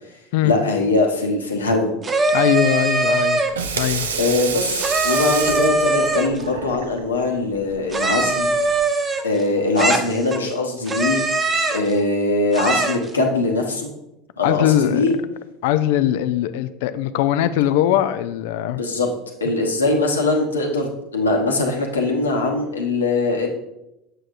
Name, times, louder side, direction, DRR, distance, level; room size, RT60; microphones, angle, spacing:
voice 1, 0.4-1.9 4.2-8.5 9.2-11.2 11.7-13.9 14.4-15.1 18.8-19.1 19.4-23.5, left 3 dB, 85° left, 1 dB, 1.0 m, -21 dB
sound 1, 2.0-3.6 4.8-6.4 7.9-9.4 9.8-10.5 10.9-11.9 12.5-13.1, right 3 dB, 25° right, 0.8 m, -21 dB
voice 2, 2.3-3.4 3.8-4.1 14.4-15.0 15.6-18.8, left 11 dB, 65° left, 12 dB, 0.4 m, -20 dB
Water tap faucet / Sink (filling or washing), 3.3-8.8, right 5 dB, 80° right, 0.5 m, -29 dB
7.6 x 6.5 x 2.5 m, 0.90 s
figure-of-eight pair, 75°, 0 cm